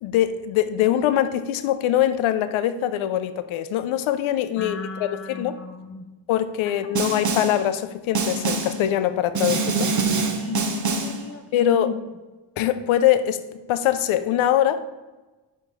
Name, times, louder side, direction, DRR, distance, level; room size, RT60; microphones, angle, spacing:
voice 1, 0.0-5.6 6.3-9.9 11.5-11.9 12.6-13.4 13.7-14.8, left 11 dB, 80° left, 12 dB, 0.6 m, -23 dB
voice 2, 4.6-6.0 6.8-7.3 10.4-11.9, left 4 dB, 30° left, 5 dB, 0.8 m, -35 dB
Snare drum, 7.0-7.6 8.2-8.8 9.4-11.2, right 4 dB, 40° right, 0.9 m, -24 dB
4.6 x 4.5 x 5.2 m, 1.2 s
cardioid pair, 80°, 47 cm